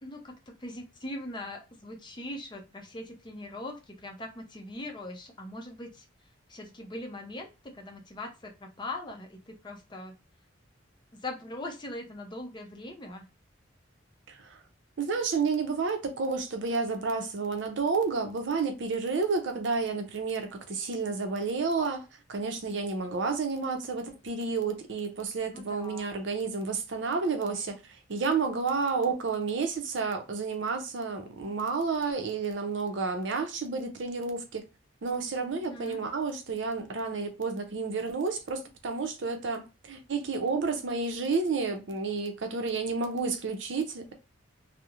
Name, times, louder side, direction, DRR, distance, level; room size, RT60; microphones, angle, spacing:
voice 1, 0.0-6.1 6.5-10.1 11.1-13.3 25.5-26.1 35.6-36.0, left 1 dB, 25° left, 0.5 m, -41 dB
voice 2, 14.3-14.6 15.0-22.0 22.3-27.8 28.1-34.6 35.0-44.1, right 4 dB, 70° right, 0.5 m, -30 dB
2.4 x 2.0 x 2.8 m
head